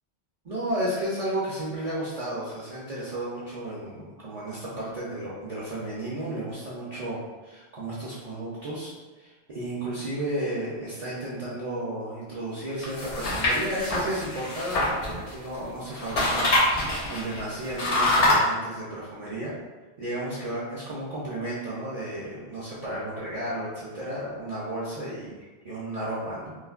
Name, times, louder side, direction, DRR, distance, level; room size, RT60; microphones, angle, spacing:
voice 1, 0.4-8.9 9.2-19.5 20.0-25.3 25.6-26.6, right 1 dB, 45° right, -9 dB, 0.5 m, -33 dB
sound 1, 12.8-15.6 15.9-18.3, left 2 dB, 80° left, 1.1 m, -25 dB
3.1 x 2.1 x 2.3 m, 1.2 s
omnidirectional pair, 1.1 m